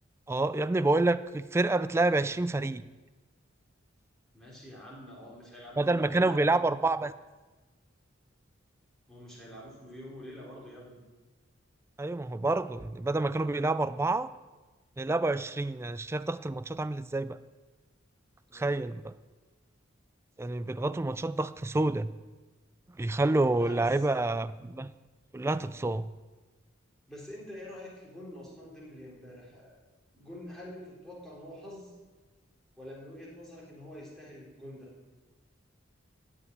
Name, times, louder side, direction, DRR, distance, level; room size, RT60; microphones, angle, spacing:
voice 1, 0.3-2.9 5.8-7.1 12.0-14.3 15.0-17.4 18.5-19.1 20.4-22.1 23.0-24.9 25.3-26.1, right 2 dB, 15° right, 14 dB, 0.3 m, -28 dB
voice 2, 4.3-6.8 9.1-11.0 18.5-19.0 23.5-24.0 27.1-29.8 30.1-32.0 32.8-34.9, left 1 dB, 5° left, -6 dB, 3.8 m, -46 dB
14.0 x 5.7 x 9.3 m, 1.2 s
head